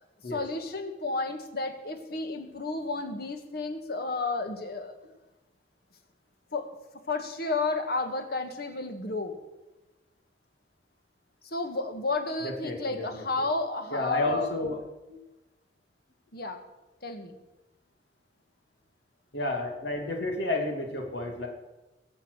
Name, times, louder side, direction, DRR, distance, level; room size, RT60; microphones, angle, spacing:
voice 1, 0.3-4.9 6.5-6.7 7.1-9.4 11.4-14.5 16.3-16.6 17.0-17.4, left 3 dB, 60° left, 6 dB, 2.0 m, -32 dB
voice 2, 12.4-13.2 13.9-14.8 15.1-15.2 19.3-21.5, left 2 dB, 85° left, 2 dB, 2.8 m, -31 dB
22.0 x 8.0 x 6.4 m, 1.1 s
head